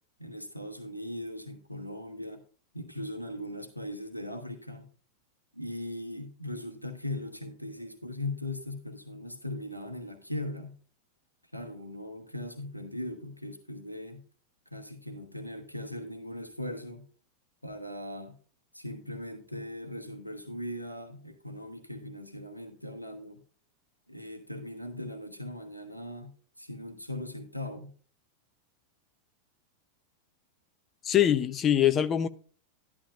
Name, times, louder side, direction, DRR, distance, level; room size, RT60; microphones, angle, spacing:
voice 1, 0.2-2.4 2.7-4.9 5.5-10.8 11.5-14.2 14.7-17.0 17.6-18.4 18.7-23.4 24.1-27.9, left 1 dB, 90° left, 1.1 m, -39 dB
voice 2, 31.0-32.3, left 10 dB, 25° left, 0.7 m, -23 dB
12.0 x 11.5 x 2.5 m
figure-of-eight pair, 90°, 0 cm